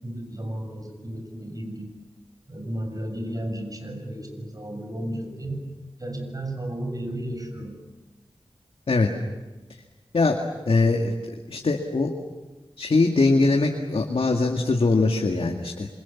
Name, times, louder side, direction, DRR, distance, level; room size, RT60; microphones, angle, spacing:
voice 1, 0.0-1.9 2.5-5.7 6.0-7.8, right 1 dB, 40° right, 5 dB, 6.8 m, -33 dB
voice 2, 10.7-11.1 11.5-12.1 12.8-15.9, left 3 dB, 75° left, 1 dB, 2.2 m, -21 dB
27.5 x 26.0 x 7.3 m, 1.2 s
wide cardioid pair, 55°, 10 cm